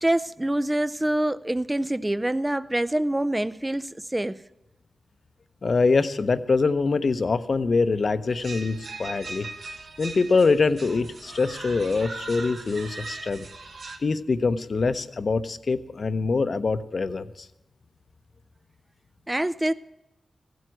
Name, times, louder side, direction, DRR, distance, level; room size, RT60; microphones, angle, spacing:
voice 1, 0.0-4.4 19.3-19.7, right 1 dB, 20° right, 15 dB, 0.5 m, -25 dB
voice 2, 5.6-9.5 10.0-13.5 14.0-17.5, left 4 dB, 60° left, 12 dB, 0.8 m, -24 dB
sound 1, 8.3-14.0, right 3 dB, 75° right, 1.4 m, -39 dB
15.5 x 7.8 x 7.8 m, 0.95 s
cardioid pair, 50°, 0 cm